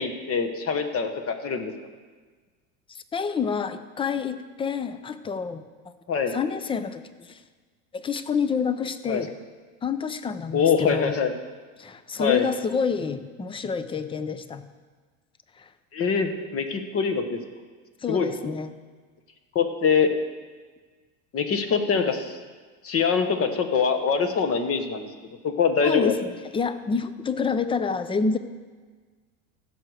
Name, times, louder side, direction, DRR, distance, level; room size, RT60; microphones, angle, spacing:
voice 1, 0.0-1.7 6.1-6.4 9.1-9.3 10.5-11.3 12.2-12.5 15.9-17.4 18.1-18.3 19.5-20.1 21.3-22.4 22.8-25.1 25.4-26.1, left 6 dB, 35° left, 7 dB, 1.2 m, -24 dB
voice 2, 2.9-5.6 6.3-7.4 7.9-9.4 9.8-11.2 11.8-14.6 15.6-15.7 18.0-18.7 25.8-28.4, left 5 dB, 15° left, 12 dB, 0.5 m, -28 dB
15.5 x 6.5 x 4.8 m, 1.4 s
supercardioid pair, 115°, 40 cm